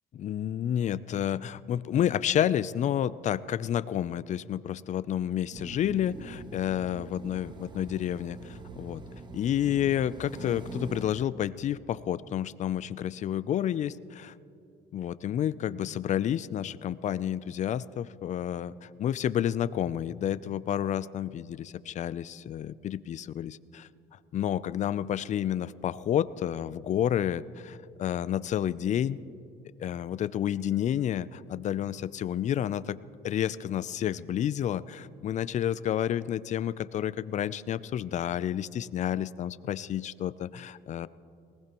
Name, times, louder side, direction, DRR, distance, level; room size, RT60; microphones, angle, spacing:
voice 1, 0.2-9.0 9.3-14.3 14.9-23.9 24.3-29.2 29.8-33.0 33.2-41.1, left 10 dB, 45° left, 17 dB, 0.4 m, -30 dB
sound 1, 5.5-11.1, right 3 dB, 25° right, 1.2 m, -43 dB
20.5 x 19.0 x 3.0 m, 2.6 s
cardioid pair, 110°, 17 cm